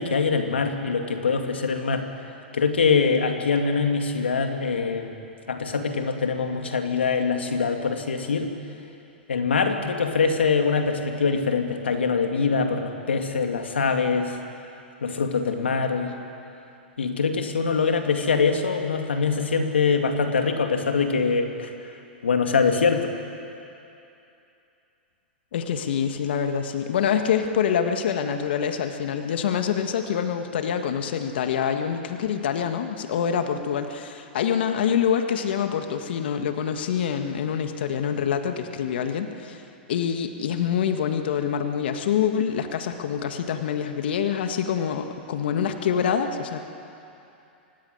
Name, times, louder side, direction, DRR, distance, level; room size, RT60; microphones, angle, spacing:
voice 1, 0.0-2.1 2.5-5.2 5.5-8.5 9.3-14.4 15.0-16.1 17.0-21.7 22.2-23.1, left 5 dB, 85° left, 5 dB, 2.4 m, -23 dB
voice 2, 25.5-39.6 39.9-46.6, left 8 dB, 70° left, 6 dB, 1.7 m, -26 dB
25.0 x 17.5 x 9.4 m, 2.8 s
hypercardioid pair, 110°, 6 cm